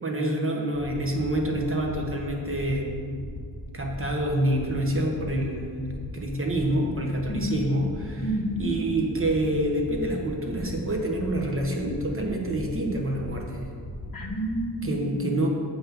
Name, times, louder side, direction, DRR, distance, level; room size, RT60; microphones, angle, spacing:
voice 1, 0.0-3.2 3.7-8.2 8.6-13.7 14.8-15.5, right 1 dB, 30° right, 0 dB, 1.3 m, -27 dB
sound 1, 0.7-14.6, equal, 75° left, 1.7 m, -39 dB
voice 2, 7.3-7.6 8.2-8.6 14.1-15.5, equal, 50° left, 0 dB, 1.3 m, -30 dB
7.6 x 5.9 x 7.1 m, 2.2 s
wide cardioid pair, 155°, 43 cm